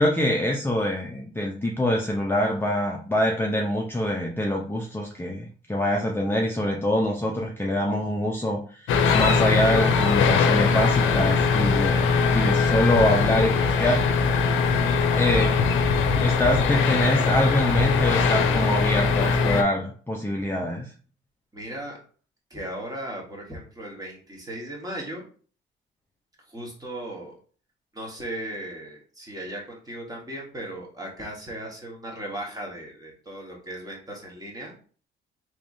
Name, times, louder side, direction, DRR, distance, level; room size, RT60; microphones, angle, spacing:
voice 1, 0.0-14.0 15.1-15.8 16.2-20.9, left 1 dB, 10° left, -1 dB, 0.5 m, -25 dB
sound 1, 8.9-19.6, left 5 dB, 80° left, 0.5 m, -21 dB
voice 2, 21.5-22.0 22.5-25.2 26.5-27.3 27.9-34.7, right 1 dB, 20° right, -2 dB, 1.4 m, -37 dB
3.4 x 3.0 x 2.6 m, 0.42 s
cardioid pair, 90°, 20 cm